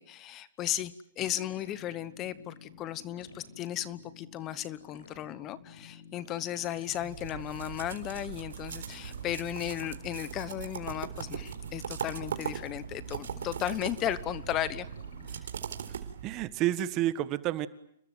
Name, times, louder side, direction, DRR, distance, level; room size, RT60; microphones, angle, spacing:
voice 1, 0.0-14.9 15.3-15.5, left 12 dB, 25° left, 16 dB, 1.1 m, -35 dB
sound 1, 1.2-15.4, left 4 dB, 75° left, 7.7 m, -52 dB
sound 2, 6.8-16.6, right 8 dB, 80° right, 4.0 m, -40 dB
voice 2, 15.9-17.7, right 13 dB, 30° right, 14 dB, 1.5 m, -30 dB
30.0 x 21.0 x 9.4 m, 0.73 s
hypercardioid pair, 150°, 0 cm